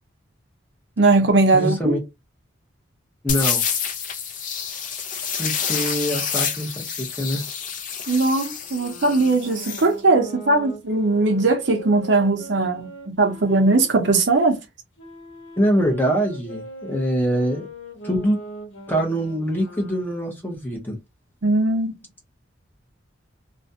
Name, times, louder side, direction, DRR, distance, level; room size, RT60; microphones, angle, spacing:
voice 1, 1.0-2.0 8.1-14.6 21.4-21.9, right 3 dB, 60° right, 0.6 m, -19 dB
voice 2, 1.5-2.0 3.2-3.6 5.4-7.4 15.6-17.7 18.0-18.4 18.9-21.0, equal, 10° left, 0.7 m, -24 dB
sound 1, 3.3-9.9, left 7 dB, 40° left, 0.4 m, -28 dB
sound 2, 8.6-14.3 15.0-20.3, equal, 80° left, 1.0 m, -40 dB
2.4 x 2.2 x 2.6 m
head